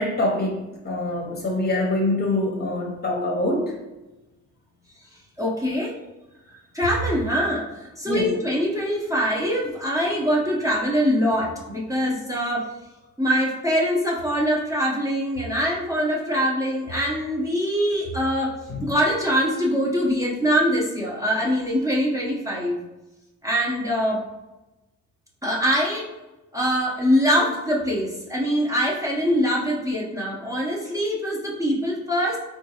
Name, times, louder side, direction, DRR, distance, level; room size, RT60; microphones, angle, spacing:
voice 1, 0.0-3.7 8.1-8.3 16.4-16.5 18.7-18.8, left 1 dB, 35° left, 0 dB, 0.7 m, -25 dB
voice 2, 5.4-6.0 6.7-7.7 8.0-12.7 13.2-22.8 23.4-24.2 25.4-26.1 26.5-32.4, equal, 10° right, -4 dB, 0.7 m, -23 dB
3.7 x 2.3 x 2.8 m, 1.0 s
cardioid pair, 90°, 30 cm